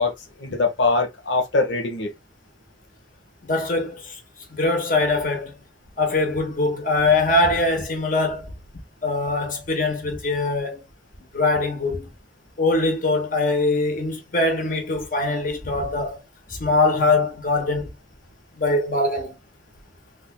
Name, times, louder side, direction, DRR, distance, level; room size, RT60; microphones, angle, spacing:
voice 1, 0.0-2.1, left 3 dB, 85° left, 1.0 m, -23 dB
voice 2, 3.4-4.2 4.5-5.5 6.0-8.5 9.0-10.8 11.3-12.1 12.6-16.2 16.5-17.9 18.6-19.3, left 2 dB, 50° left, 1.2 m, -22 dB
3.6 x 3.5 x 2.3 m
head